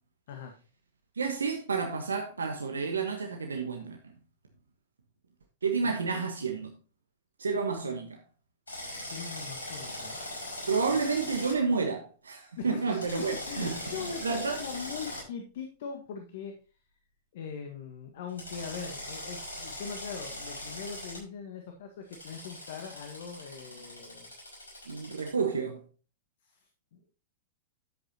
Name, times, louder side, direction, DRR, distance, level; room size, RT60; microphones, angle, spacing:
voice 1, 1.2-4.0 5.6-6.7 7.4-8.2 10.7-13.8 14.2-14.6 24.9-25.8, right 5 dB, 80° right, 1.3 m, -30 dB
Drill, 8.7-11.6 12.9-15.2 18.4-21.2 22.1-25.3, left 1 dB, 85° left, 5.7 m, -41 dB
voice 2, 8.9-10.2 10.9-11.0 12.6-16.5 17.3-24.3 26.4-27.1, left 6 dB, 60° left, 1.6 m, -41 dB
11.0 x 8.0 x 2.9 m
figure-of-eight pair, 100°, 0 cm